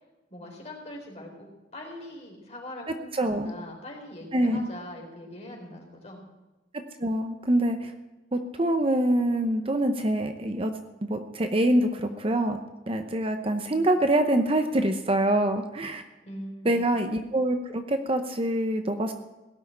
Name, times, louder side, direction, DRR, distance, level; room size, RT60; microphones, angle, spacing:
voice 1, 0.3-6.2 16.2-16.8, left 1 dB, 35° left, 0 dB, 3.9 m, -42 dB
voice 2, 3.1-3.5 4.3-4.7 7.0-7.9 8.3-10.7 11.0-12.6 12.9-16.0 16.6-19.1, right 1 dB, 30° right, 7 dB, 0.8 m, -25 dB
17.5 x 6.3 x 9.6 m, 1.1 s
head